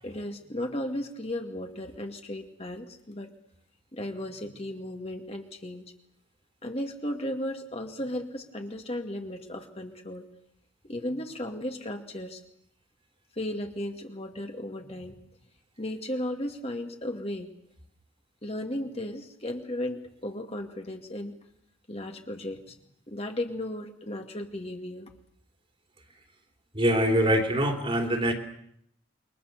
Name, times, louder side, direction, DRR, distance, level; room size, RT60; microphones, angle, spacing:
voice 1, 0.0-3.3 3.9-5.9 6.6-10.3 10.8-12.4 13.4-15.2 15.8-17.5 18.4-21.4 21.9-22.8 23.1-25.1, left 1 dB, 30° left, 3 dB, 2.5 m, -35 dB
voice 2, 26.7-28.3, equal, 30° right, 4 dB, 3.2 m, -24 dB
28.5 x 24.0 x 6.9 m, 0.71 s
head